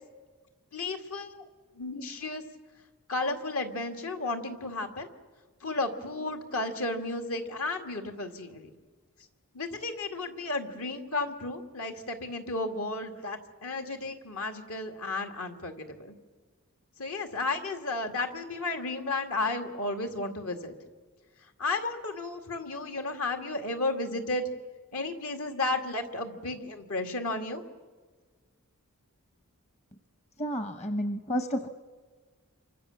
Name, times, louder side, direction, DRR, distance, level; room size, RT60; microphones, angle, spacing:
voice 1, 0.7-1.5 1.7-2.4 3.1-5.1 5.6-8.7 9.5-16.1 17.0-20.7 21.6-24.5 24.9-27.6, left 2 dB, 70° left, 6 dB, 2.5 m, -33 dB
voice 2, 30.4-31.7, equal, 30° left, 9 dB, 1.1 m, -31 dB
27.5 x 25.0 x 7.3 m, 1.4 s
head